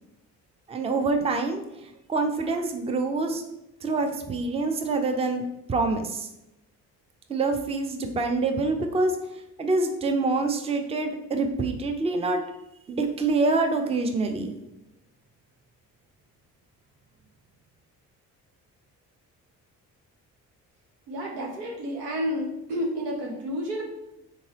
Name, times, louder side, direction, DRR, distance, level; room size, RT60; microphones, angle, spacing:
voice 1, 0.7-3.4 3.8-6.3 7.3-9.2 9.6-12.4 12.9-14.5, right 3 dB, 15° right, 5 dB, 0.5 m, -26 dB
voice 2, 21.1-23.8, equal, 85° right, 0 dB, 0.8 m, -30 dB
3.8 x 3.7 x 3.0 m, 0.87 s
figure-of-eight pair, 45°, 48 cm